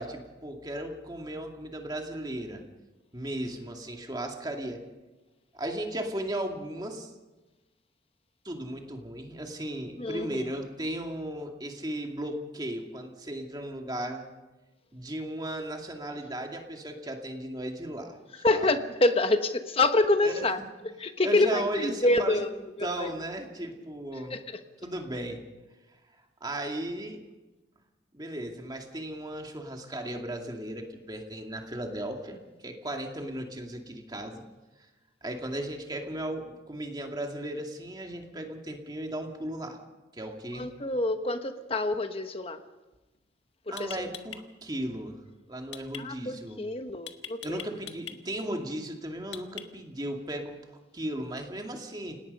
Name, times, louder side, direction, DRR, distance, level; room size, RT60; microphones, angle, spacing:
voice 1, 0.0-2.6 3.1-4.8 5.5-7.1 8.4-14.3 14.9-18.2 18.4-18.7 20.2-20.4 21.2-22.5 22.8-24.4 24.8-25.4 26.4-27.2 28.1-32.4 32.6-34.4 35.2-39.8 40.1-40.7 43.7-45.2 45.5-46.6 47.4-50.5 50.9-52.2, right 1 dB, 20° right, 2 dB, 2.3 m, -36 dB
voice 2, 10.0-10.4 18.4-22.5 22.8-23.1 24.3-24.6 40.6-42.6 43.7-44.1 46.0-47.7, left 2 dB, 30° left, 8 dB, 1.2 m, -27 dB
sound 1, 43.1-43.3 43.8-44.4 45.7-46.0 47.1-48.2 49.3-49.9, left 9 dB, 75° left, 1.6 m, -41 dB
29.0 x 18.5 x 5.5 m, 1.2 s
head